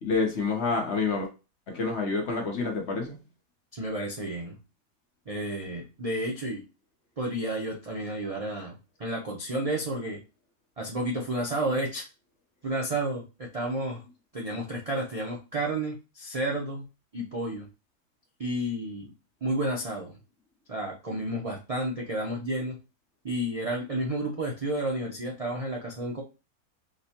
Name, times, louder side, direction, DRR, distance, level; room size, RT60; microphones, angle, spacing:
voice 1, 0.0-1.3 1.7-3.2, left 4 dB, 55° left, 0.9 m, -28 dB
voice 2, 3.7-4.6 5.3-6.6 7.2-8.7 9.0-10.2 10.8-12.1 12.6-14.0 14.3-16.8 17.1-17.7 18.4-19.1 19.4-20.2 20.7-22.8 23.2-26.2, right 1 dB, 75° right, 0.3 m, -31 dB
5.0 x 2.1 x 2.8 m
omnidirectional pair, 1.7 m